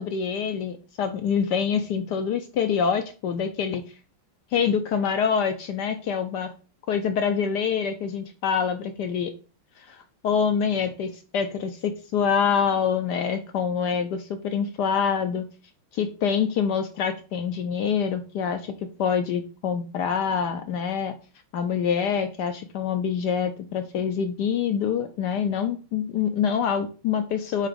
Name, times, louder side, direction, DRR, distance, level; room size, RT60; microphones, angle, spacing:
voice 1, 0.0-3.8 4.5-6.5 6.9-9.3 9.8-15.5 15.9-18.7 19.0-21.1 21.5-27.7, left 7 dB, 75° left, 7 dB, 1.0 m, -26 dB
7.4 x 3.0 x 5.0 m, 0.35 s
omnidirectional pair, 2.3 m